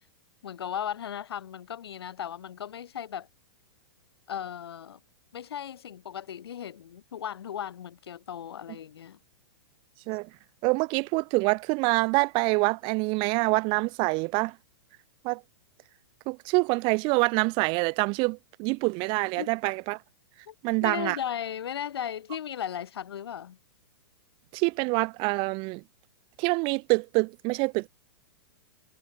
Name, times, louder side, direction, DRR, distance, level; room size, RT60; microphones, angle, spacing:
voice 1, 0.4-3.3 4.3-5.0 5.3-9.2 19.4-19.5 20.5-20.6 20.8-23.6, left 9 dB, 75° left, 4.3 m, -36 dB
voice 2, 10.6-14.5 15.2-15.4 16.3-20.0 20.6-21.2 24.5-25.8 26.4-27.9, right 29 dB, 40° right, 1.0 m, -26 dB
hypercardioid pair, 125°, 13 cm